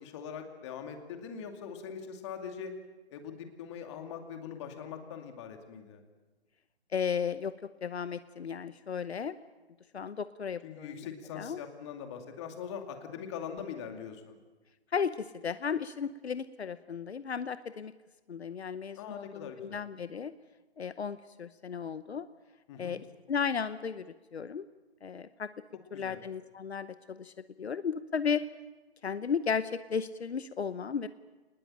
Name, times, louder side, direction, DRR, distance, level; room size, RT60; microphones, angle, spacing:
voice 1, 0.0-2.7 3.1-6.0 10.6-14.4 19.0-19.8 22.7-23.0 25.9-26.2, left 7 dB, 25° left, 5 dB, 2.4 m, -42 dB
voice 2, 6.9-7.5 7.8-9.4 9.9-11.1 11.4-11.6 14.9-17.9 18.3-20.3 20.8-22.3 22.8-23.0 23.3-24.6 25.0-25.5 25.9-27.3 27.6-28.4 29.0-31.1, left 6 dB, 75° left, 14 dB, 0.9 m, -34 dB
23.5 x 20.5 x 8.9 m, 1.2 s
figure-of-eight pair, 150°, 33 cm